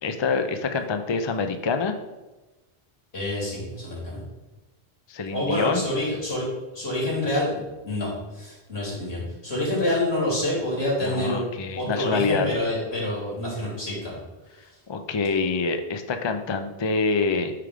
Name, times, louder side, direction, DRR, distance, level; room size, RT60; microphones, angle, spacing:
voice 1, 0.0-1.9 5.1-5.8 11.0-12.5 14.9-17.5, left 4 dB, 35° left, 7 dB, 0.4 m, -26 dB
voice 2, 3.1-4.2 5.3-6.5 6.7-7.6 7.8-11.4 11.7-14.2, left 1 dB, 80° left, -5 dB, 3.2 m, -27 dB
9.1 x 3.6 x 4.8 m, 1.1 s
omnidirectional pair, 1.1 m